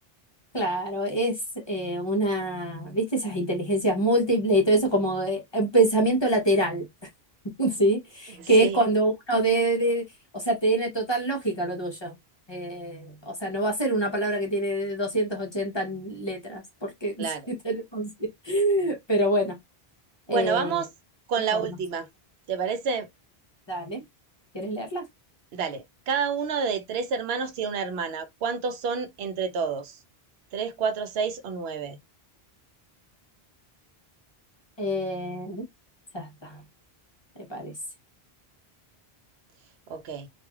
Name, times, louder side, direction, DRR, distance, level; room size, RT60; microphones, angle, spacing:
voice 1, 0.5-1.3 1.7-6.8 7.6-10.0 10.3-12.1 12.5-17.1 17.5-18.1 18.4-19.6 20.3-20.8 21.5-21.6 23.7-24.0 24.5-25.0 34.8-35.6 36.1-36.6 37.5-37.7, right 1 dB, 30° left, 0.7 m, -25 dB
voice 2, 8.4-8.8 17.2-17.5 20.3-20.9 21.3-22.1 22.5-23.1 25.5-30.0 30.5-32.0 39.9-40.3, right 6 dB, 85° right, 0.8 m, -29 dB
3.1 x 2.4 x 2.3 m
omnidirectional pair, 1.0 m